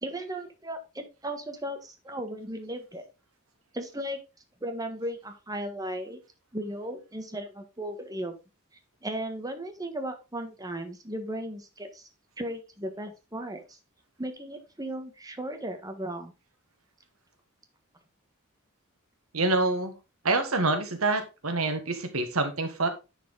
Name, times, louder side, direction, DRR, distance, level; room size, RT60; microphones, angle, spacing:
voice 1, 0.0-3.0 3.7-4.2 4.6-6.2 6.5-8.3 9.0-12.1 12.4-13.8 14.2-16.3, right 1 dB, 15° right, 6 dB, 1.5 m, -36 dB
voice 2, 19.3-19.9 20.2-22.9, right 3 dB, 90° right, 7 dB, 1.6 m, -26 dB
10.5 x 4.8 x 3.8 m, 0.28 s
head